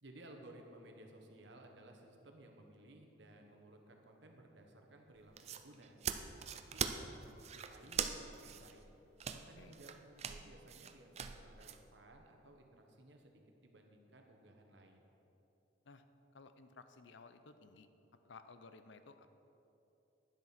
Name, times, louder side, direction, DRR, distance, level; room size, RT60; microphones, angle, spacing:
voice 1, 0.0-6.0 6.4-8.9 9.3-15.1, right 1 dB, 70° right, 3 dB, 1.2 m, -58 dB
sound 1, 5.2-11.8, right 7 dB, 35° right, 0.4 m, -42 dB
voice 2, 16.3-17.9 18.2-19.3, left 4 dB, 75° left, 10 dB, 0.6 m, -57 dB
10.5 x 7.6 x 5.8 m, 3.0 s
head